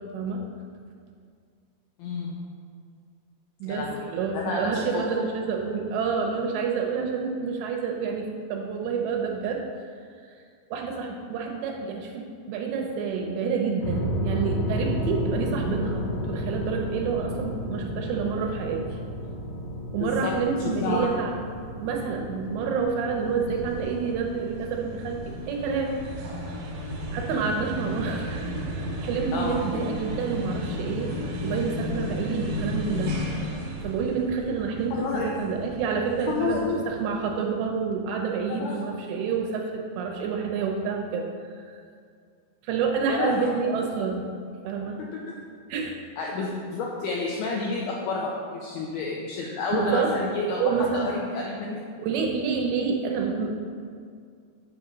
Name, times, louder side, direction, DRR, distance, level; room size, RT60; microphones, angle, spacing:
voice 1, 2.0-2.4 3.6-5.0 20.0-20.3 20.8-21.1 29.3-29.6 34.9-35.3 36.3-36.8 38.5-38.9 43.1-43.5 45.1-45.2 46.2-51.8, left 4 dB, 85° left, -3 dB, 2.2 m, -30 dB
voice 2, 3.6-9.6 10.3-10.4 10.7-19.0 19.9-21.3 21.8-25.9 27.1-33.2 33.8-41.3 41.7-41.8 42.6-44.3 44.6-45.0 45.7-46.0 49.7-51.1 52.0-53.5, right 5 dB, 80° right, 1 dB, 2.8 m, -28 dB
sound 1, 13.8-29.0, equal, 65° left, 1.7 m, -33 dB
sound 2, 23.1-37.4, equal, 65° right, 2.3 m, -34 dB
7.0 x 5.0 x 6.5 m, 2.2 s
omnidirectional pair, 5.4 m